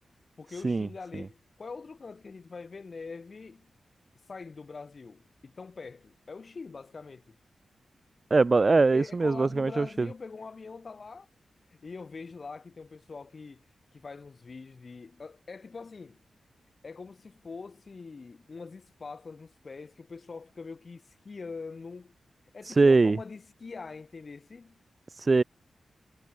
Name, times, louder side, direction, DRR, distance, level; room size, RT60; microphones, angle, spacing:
voice 1, 0.4-3.7 4.3-7.4 8.8-11.3 11.7-13.6 13.9-16.2 16.8-22.1 22.5-24.8, left 4 dB, 35° left, 2.3 m, -43 dB
voice 2, 8.3-10.1 22.6-23.2 25.1-25.4, right 3 dB, 30° right, 0.3 m, -22 dB
wide cardioid pair, 180°, 0 cm